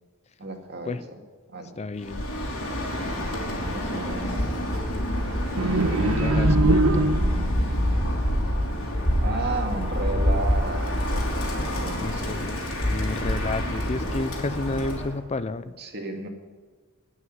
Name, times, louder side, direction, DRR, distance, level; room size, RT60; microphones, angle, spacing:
voice 1, 0.4-1.2 1.5-1.7 3.7-4.3 7.6-8.1 9.2-11.2 11.7-12.4 15.8-16.3, right 3 dB, 50° right, 3 dB, 2.1 m, -34 dB
voice 2, 1.8-2.2 6.0-7.1 12.0-12.6 12.9-15.7, left 3 dB, 30° left, 13 dB, 0.4 m, -31 dB
Bird, 2.0-15.1, equal, 70° left, 3.6 m, -26 dB
sound 1, 5.6-7.6, right 2 dB, 85° right, 1.2 m, -23 dB
18.5 x 6.4 x 9.4 m, 1.5 s
head